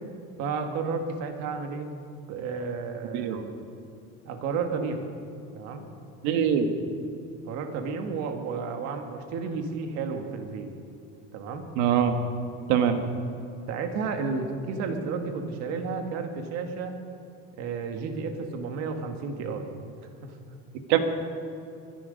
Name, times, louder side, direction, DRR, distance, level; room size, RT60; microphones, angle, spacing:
voice 1, 0.4-1.9 2.3-3.4 4.3-5.1 5.6-5.9 7.5-10.7 11.3-11.7 13.7-17.0 17.6-19.7 20.2-20.3, right 4 dB, 60° right, 5 dB, 1.8 m, -32 dB
voice 2, 6.2-6.7 11.8-12.2 12.7-13.0 20.9-21.0, right 9 dB, 85° right, 7 dB, 1.6 m, -22 dB
23.0 x 11.0 x 5.3 m, 2.6 s
cardioid pair, 170°, 29 cm